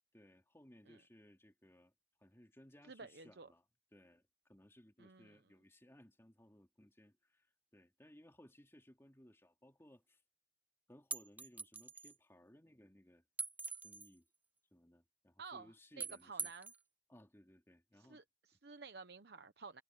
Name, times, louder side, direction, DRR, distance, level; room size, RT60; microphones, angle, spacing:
voice 1, 0.1-3.6 3.9-10.2 10.9-13.2 13.8-14.3 14.7-16.5 17.1-18.2 18.5-18.6, equal, 15° left, 2.9 m, -63 dB
voice 2, 2.9-3.5 5.0-5.4 15.4-15.7 16.0-16.7 18.0-19.8, right 4 dB, 60° right, 0.9 m, -52 dB
sound 1, 11.1-12.1 13.4-14.1 16.0-16.8, right 4 dB, 10° right, 0.6 m, -43 dB
head